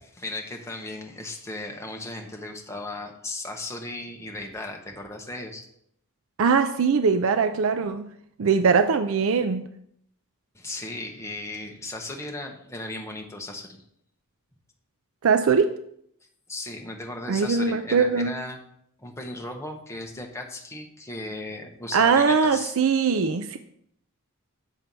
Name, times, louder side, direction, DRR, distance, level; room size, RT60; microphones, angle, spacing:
voice 1, 0.0-5.6 10.5-13.8 16.5-18.6 19.0-22.8, left 2 dB, 15° left, 2 dB, 0.9 m, -36 dB
voice 2, 6.4-8.1 8.4-9.7 15.2-15.7 17.3-18.3 21.9-23.6, right 5 dB, 65° right, 8 dB, 0.4 m, -21 dB
7.4 x 4.4 x 5.3 m, 0.71 s
head